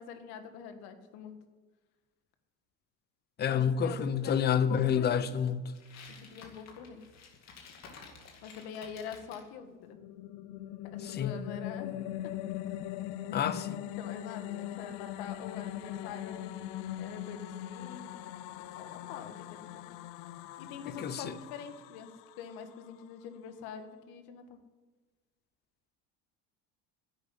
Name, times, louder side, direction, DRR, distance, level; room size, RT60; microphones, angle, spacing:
voice 1, 0.0-1.4 3.5-5.3 6.2-7.0 8.4-10.0 10.9-12.4 14.0-16.5 17.0-18.4 18.8-19.7 20.6-22.1 22.4-24.6, left 7 dB, 70° left, 1.8 m, -45 dB
voice 2, 3.4-5.6 11.0-11.4 13.3-13.8 21.0-21.3, left 8 dB, 25° left, 0.6 m, -28 dB
sound 1, 5.7-9.5, left 5 dB, 40° left, 2.4 m, -52 dB
sound 2, 9.6-23.0, left 13 dB, 85° left, 0.7 m, -41 dB
11.0 x 8.4 x 9.6 m
cardioid pair, 160°, 39 cm